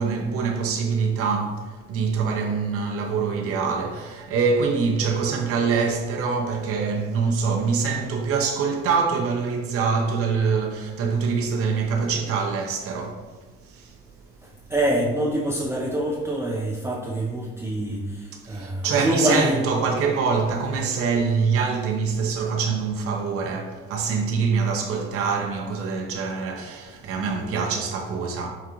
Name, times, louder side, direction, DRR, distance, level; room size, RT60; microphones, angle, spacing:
voice 1, 0.0-13.3 13.6-14.0 18.3-28.5, right 5 dB, 50° right, 0.7 m, -24 dB
voice 2, 14.4-19.6, right 1 dB, 10° right, 0.5 m, -25 dB
4.8 x 2.4 x 2.8 m
supercardioid pair, 75°, 31 cm